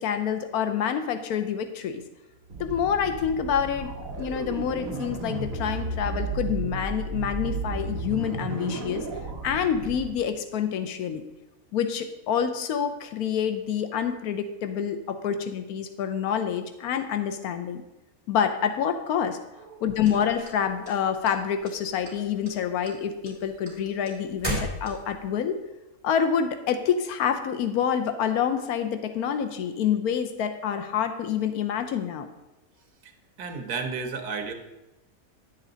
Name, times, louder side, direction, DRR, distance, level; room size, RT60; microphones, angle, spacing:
voice 1, 0.0-2.0 2.6-9.1 9.4-11.2 11.7-17.8 18.3-19.4 19.8-25.6 26.0-32.3, left 8 dB, 90° left, 8 dB, 1.2 m, -27 dB
sound 1, 2.5-10.1, right 3 dB, 65° right, 1.7 m, -33 dB
sound 2, 20.0-21.3 21.6-22.2 22.5-25.3, right 1 dB, 20° right, 2.5 m, -34 dB
voice 2, 33.4-34.5, right 5 dB, 90° right, 6 dB, 1.5 m, -33 dB
10.0 x 7.3 x 3.9 m, 0.99 s
omnidirectional pair, 1.6 m